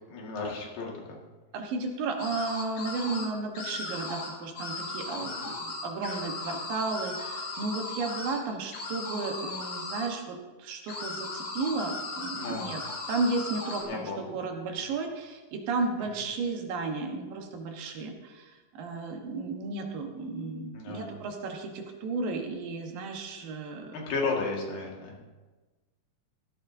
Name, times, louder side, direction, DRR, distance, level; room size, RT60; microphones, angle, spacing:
voice 1, 0.1-1.2 5.2-5.5 12.3-12.7 13.8-14.2 20.7-21.1 23.9-25.2, left 3 dB, 80° left, -2 dB, 3.6 m, -34 dB
voice 2, 1.5-12.8 13.1-23.9, right 3 dB, 85° right, 3 dB, 3.0 m, -33 dB
sound 1, 2.2-3.3 3.5-4.3 4.6-8.4 8.7-10.1 10.9-13.8, left 3 dB, 60° left, 3.2 m, -37 dB
15.5 x 12.5 x 2.7 m, 1.2 s
omnidirectional pair, 3.9 m